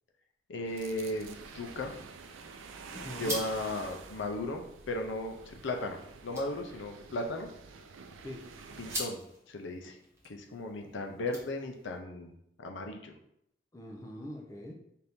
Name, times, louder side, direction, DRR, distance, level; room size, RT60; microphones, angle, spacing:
voice 1, 0.5-1.9 3.2-6.0 6.2-7.5 8.8-9.2 9.5-10.0 10.3-12.3 12.6-13.1, left 1 dB, 70° left, 3 dB, 0.6 m, -36 dB
sound 1, 0.7-9.0, right 5 dB, 85° right, 0.4 m, -48 dB
sound 2, 1.6-12.0, right 1 dB, 15° right, 0.9 m, -46 dB
voice 2, 2.9-3.4 8.2-8.4 10.8-11.2 13.7-14.7, left 1 dB, 15° left, 0 dB, 0.4 m, -43 dB
4.3 x 2.7 x 3.4 m, 0.75 s
head